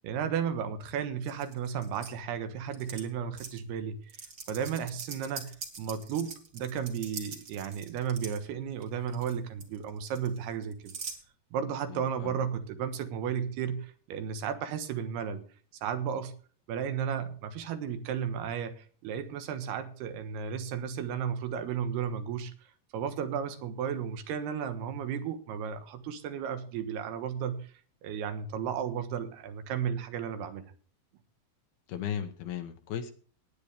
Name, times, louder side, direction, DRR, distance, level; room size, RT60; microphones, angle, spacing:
voice 1, 0.0-10.9 11.5-15.4 15.8-16.3 16.7-22.5 22.9-27.7 28.0-30.7, right 8 dB, 85° right, 9 dB, 3.3 m, -34 dB
sound 1, 1.2-2.1 2.7-3.0 3.4-3.6 4.1-8.4 8.8-9.3 9.6-11.2, right 5 dB, 40° right, 2.3 m, -43 dB
voice 2, 11.9-12.4 31.9-33.1, left 9 dB, 75° left, 6 dB, 3.0 m, -36 dB
18.5 x 9.5 x 3.5 m, 0.44 s
omnidirectional pair, 4.5 m